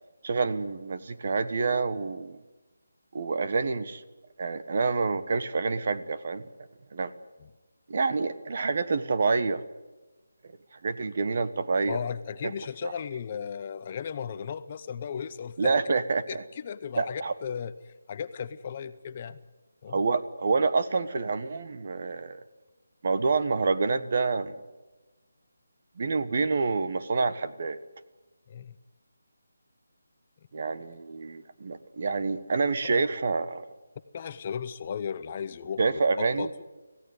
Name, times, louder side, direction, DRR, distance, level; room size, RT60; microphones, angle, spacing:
voice 1, 0.2-2.4 3.1-4.0 4.4-6.4 6.9-7.1 7.9-9.6 10.8-12.0 12.4-12.5 12.8-12.9 15.6-16.4 17.0-17.3 19.9-22.4 23.0-24.6 26.0-27.8 30.5-33.6 35.8-36.5, right 4 dB, 40° right, 11 dB, 1.4 m, -27 dB
voice 2, 11.9-15.7 16.3-19.4 19.8-20.0 28.5-28.7 32.8-32.9 34.1-36.5, left 7 dB, 25° left, 12 dB, 0.8 m, -36 dB
26.0 x 16.5 x 9.7 m, 1.2 s
figure-of-eight pair, 170°, 0 cm